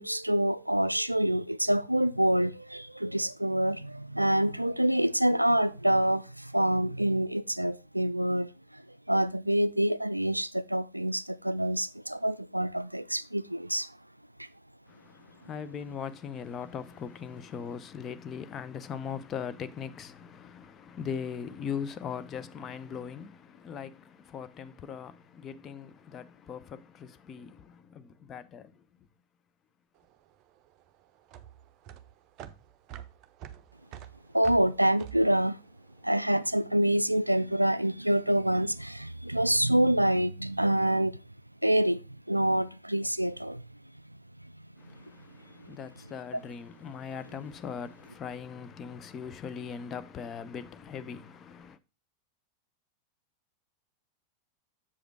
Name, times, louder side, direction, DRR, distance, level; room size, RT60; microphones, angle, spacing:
voice 1, 0.0-8.8 9.1-13.9 14.4-14.5 34.3-35.6 36.0-41.2 41.6-42.0 42.3-43.6 45.7-45.8, right 1 dB, 90° right, 0.3 m, -26 dB
voice 2, 14.9-29.1 44.8-51.8, left 7 dB, 25° left, 0.6 m, -40 dB
sound 1, 30.0-36.5, right 10 dB, 35° right, 0.6 m, -47 dB
7.1 x 5.1 x 4.6 m
figure-of-eight pair, 90°, 0 cm